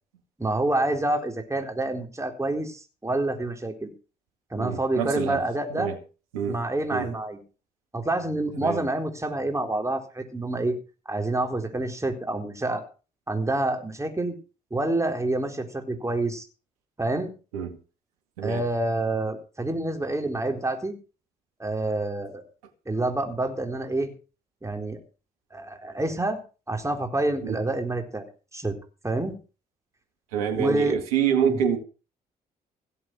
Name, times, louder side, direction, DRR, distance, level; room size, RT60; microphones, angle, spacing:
voice 1, 0.4-3.9 4.5-5.9 6.5-7.4 7.9-10.8 11.1-12.8 13.3-14.3 14.7-16.5 17.0-17.3 18.4-21.0 21.6-22.4 22.9-24.1 24.6-25.0 25.5-26.4 26.7-28.2 28.5-28.8 29.0-29.3 30.6-31.0 31.5-31.6, right 2 dB, 15° right, 4.0 m, -27 dB
voice 2, 4.5-5.4 5.7-5.9 6.3-6.6 6.9-7.1 8.5-8.8 17.5-17.8 18.4-18.7 27.4-27.6 30.3-31.8, right 8 dB, 90° right, 2.1 m, -26 dB
17.0 x 7.9 x 6.3 m
hypercardioid pair, 50°, 18 cm